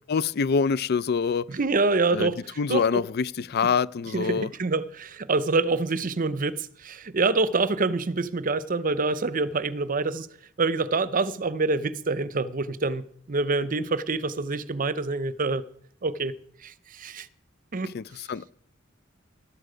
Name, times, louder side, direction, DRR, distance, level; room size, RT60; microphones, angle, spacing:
voice 1, 0.1-1.5 2.1-2.3 2.6-4.5 17.9-18.4, left 5 dB, 55° left, 0.4 m, -25 dB
voice 2, 1.5-2.4 2.7-3.0 4.1-10.3 10.6-15.6 16.0-16.3 16.6-17.3 17.7-17.9, right 3 dB, 45° right, 0.7 m, -26 dB
13.5 x 12.5 x 5.1 m
head